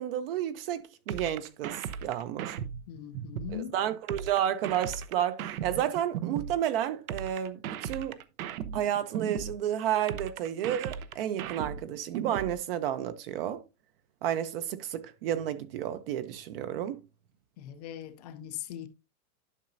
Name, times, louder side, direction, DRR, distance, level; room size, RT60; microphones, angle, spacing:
voice 1, 0.0-2.6 3.5-8.2 8.7-13.6 14.2-17.0, right 10 dB, 40° right, 0.7 m, -31 dB
sound 1, 1.1-3.6 4.1-6.6 7.1-9.6 10.1-12.6, right 8 dB, 75° right, 1.0 m, -36 dB
voice 2, 2.9-3.7 17.6-18.9, left 11 dB, 30° left, 0.5 m, -40 dB
11.0 x 5.7 x 2.6 m
supercardioid pair, 165°, 43 cm